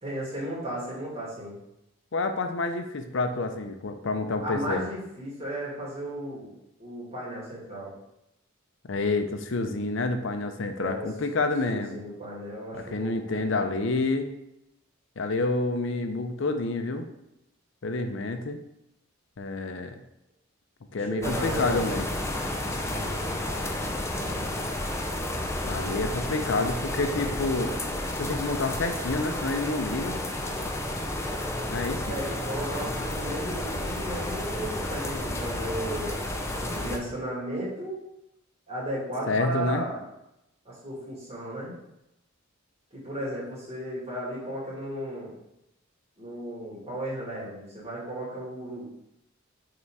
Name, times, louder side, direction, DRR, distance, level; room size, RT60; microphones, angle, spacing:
voice 1, 0.0-1.5 4.4-6.5 6.8-7.9 10.8-11.1 11.7-13.4 21.1-21.9 24.2-24.4 32.1-36.1 36.7-38.0 38.7-40.0 40.7-41.7 42.9-45.4 46.2-48.9, right 1 dB, 30° right, -6 dB, 2.2 m, -35 dB
voice 2, 2.1-4.8 8.9-12.0 12.7-14.3 15.2-17.1 17.8-18.6 19.4-20.0 20.9-22.1 25.7-27.7 28.2-30.2 31.7-32.0 39.3-39.9, left 3 dB, 60° left, 7 dB, 0.6 m, -28 dB
sound 1, 21.2-37.0, left 1 dB, 15° left, 0.5 m, -31 dB
5.5 x 3.9 x 4.7 m, 0.86 s
head